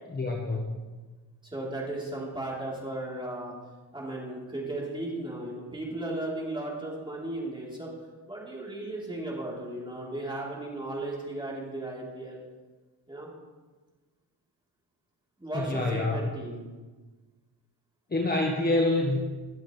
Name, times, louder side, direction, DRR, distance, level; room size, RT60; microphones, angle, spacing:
voice 1, 0.1-0.9 15.5-16.3 18.1-19.2, left 2 dB, 20° left, 0 dB, 1.4 m, -27 dB
voice 2, 1.5-3.5 3.9-7.9 8.3-12.4 13.1-13.3 15.4-16.7, right 2 dB, 10° right, -5 dB, 4.1 m, -35 dB
22.5 x 7.8 x 3.5 m, 1.3 s
cardioid pair, 100°, 43 cm